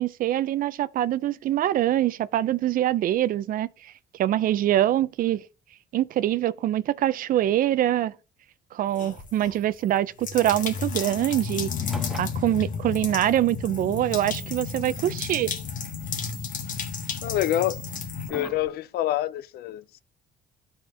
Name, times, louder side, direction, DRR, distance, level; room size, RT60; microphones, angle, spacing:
voice 1, 0.0-5.4 5.9-8.1 8.7-11.7 12.2-15.5, right 12 dB, 55° right, 0.4 m, -24 dB
sound 1, 9.0-9.6 10.2-18.3, left 6 dB, 50° left, 1.4 m, -32 dB
sound 2, 11.8-18.7, right 1 dB, ahead, 0.8 m, -45 dB
voice 2, 17.2-17.8 18.3-20.0, left 13 dB, 70° left, 0.4 m, -27 dB
13.0 x 4.3 x 2.7 m
cardioid pair, 110°, 17 cm